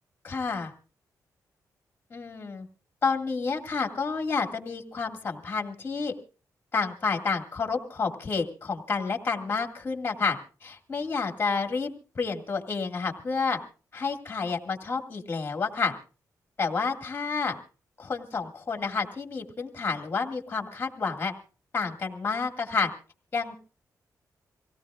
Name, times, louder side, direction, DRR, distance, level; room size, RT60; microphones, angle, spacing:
voice 1, 0.2-0.7 2.1-2.7 3.0-6.1 6.7-13.6 13.9-15.9 16.6-17.6 18.0-21.3 21.7-22.9 23.3-23.5, left 4 dB, 30° left, 3 dB, 2.0 m, -29 dB
25.5 x 17.5 x 2.4 m, 0.36 s
wide cardioid pair, 140°, 7 cm